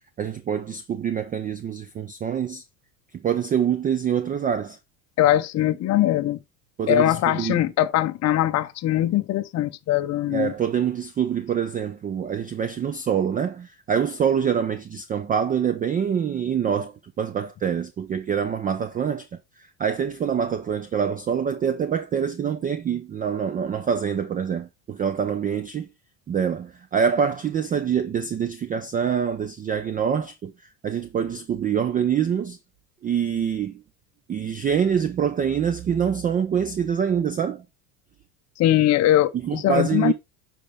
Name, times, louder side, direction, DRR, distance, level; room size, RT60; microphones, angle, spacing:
voice 1, 0.2-2.6 3.2-4.8 6.8-7.7 10.3-19.3 19.8-25.9 26.3-30.5 30.8-32.6 33.0-33.8 34.3-37.6 39.4-40.1, right 8 dB, 20° right, 0.3 m, -25 dB
voice 2, 5.2-6.4 6.9-10.5 38.6-40.1, left 13 dB, 35° left, 0.7 m, -21 dB
9.7 x 4.5 x 3.4 m
supercardioid pair, 110°, 49 cm